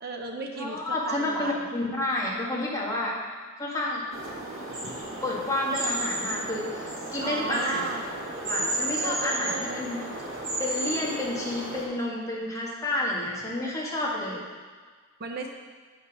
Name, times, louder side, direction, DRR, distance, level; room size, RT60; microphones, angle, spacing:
voice 1, 0.0-1.6 4.7-5.0 5.8-6.0 7.2-8.1 9.0-9.9 15.2-15.5, right 3 dB, 50° right, 2 dB, 0.8 m, -35 dB
voice 2, 0.6-3.1 3.6-4.0 5.2-7.8 8.4-10.0 10.6-14.4, left 1 dB, 15° left, -5 dB, 1.7 m, -30 dB
sound 1, 4.1-11.9, right 1 dB, 75° right, 2.7 m, -33 dB
8.0 x 5.8 x 6.2 m, 1.5 s
head